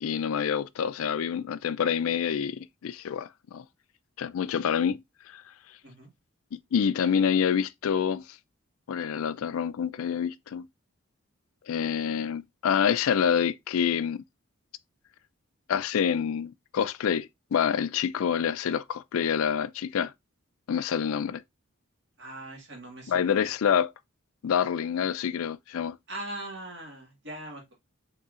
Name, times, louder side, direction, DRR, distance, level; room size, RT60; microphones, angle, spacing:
voice 1, 0.0-3.6 4.2-5.0 5.3-5.4 6.7-8.2 8.9-10.7 11.7-14.2 15.7-20.1 20.7-21.4 23.1-23.9 24.4-26.0, left 7 dB, 80° left, 0.4 m, -27 dB
voice 2, 22.2-23.5 26.1-27.7, right 1 dB, 55° right, 1.8 m, -41 dB
5.5 x 3.7 x 2.5 m
head